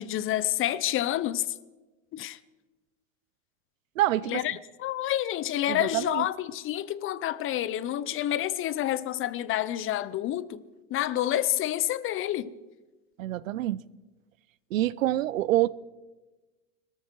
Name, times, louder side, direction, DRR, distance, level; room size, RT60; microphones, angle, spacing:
voice 1, 0.0-1.5 2.1-2.4 4.3-10.6 10.9-12.5, left 13 dB, 35° left, 0.6 m, -28 dB
voice 2, 4.0-4.4 5.7-6.2 13.2-13.8 14.7-15.7, right 14 dB, 85° right, 0.6 m, -26 dB
21.0 x 13.5 x 4.7 m
hypercardioid pair, 105°, 38 cm